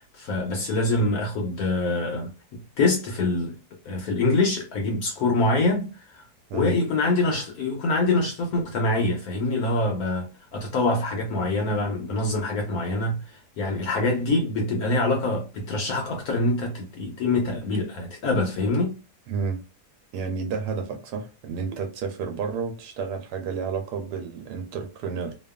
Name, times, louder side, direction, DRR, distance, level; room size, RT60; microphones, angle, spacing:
voice 1, 0.1-3.6 3.8-6.2 6.5-10.3 10.5-13.2 13.6-19.0, left 2 dB, 70° left, 1.1 m, -25 dB
voice 2, 19.3-19.6 20.1-25.3, right 5 dB, 80° right, 1.2 m, -31 dB
2.9 x 2.3 x 2.2 m
omnidirectional pair, 1.7 m